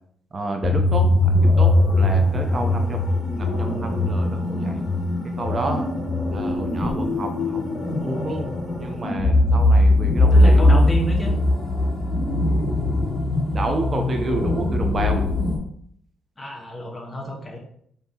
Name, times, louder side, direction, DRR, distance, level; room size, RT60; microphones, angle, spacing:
voice 1, 0.3-3.0 3.4-4.8 5.4-5.8 6.3-8.5 8.8-10.6 13.5-15.2, right 2 dB, 40° right, 4 dB, 0.7 m, -30 dB
sound 1, 0.6-15.6, left 1 dB, 55° left, 1.6 m, -20 dB
voice 2, 10.3-11.4 16.4-17.6, right 1 dB, 25° left, 1 dB, 1.1 m, -29 dB
5.3 x 2.9 x 2.8 m, 0.65 s
cardioid pair, 80°, 0 cm